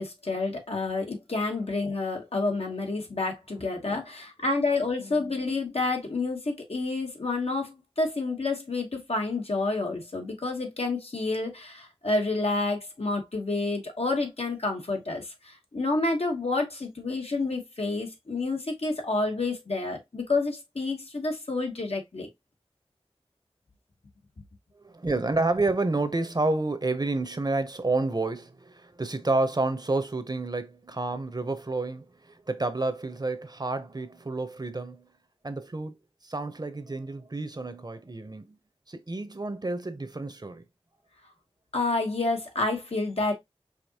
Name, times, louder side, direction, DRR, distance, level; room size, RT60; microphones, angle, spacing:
voice 1, 0.0-22.3 41.7-43.3, left 3 dB, 80° left, 1.1 m, -29 dB
voice 2, 24.7-35.1 35.4-35.9 36.2-38.6 38.9-40.6, right 2 dB, 40° right, 0.7 m, -29 dB
4.9 x 2.9 x 2.8 m
wide cardioid pair, 50°, 10 cm